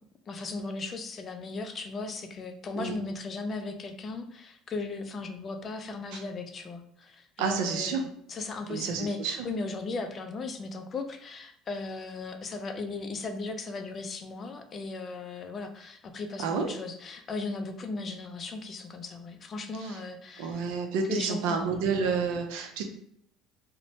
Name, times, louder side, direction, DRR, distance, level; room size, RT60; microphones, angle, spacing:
voice 1, 0.3-20.7 21.1-21.9, left 3 dB, 35° left, 6 dB, 0.4 m, -37 dB
voice 2, 7.4-8.0 8.7-9.5 16.4-16.7 19.8-20.0 20.4-22.8, right 5 dB, 85° right, 5 dB, 0.4 m, -30 dB
2.7 x 2.1 x 3.0 m, 0.69 s
supercardioid pair, 110°, 0 cm